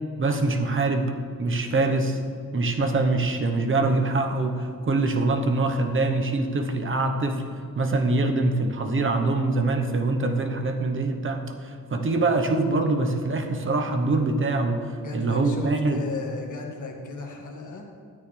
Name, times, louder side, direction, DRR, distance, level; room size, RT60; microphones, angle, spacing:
voice 1, 0.2-1.1 1.4-2.2 2.5-7.4 7.8-16.0, right 2 dB, 35° right, 5 dB, 1.0 m, -24 dB
voice 2, 15.0-17.8, left 4 dB, 55° left, 0 dB, 1.8 m, -35 dB
13.0 x 8.9 x 3.3 m, 2.4 s
wide cardioid pair, 115°, 35 cm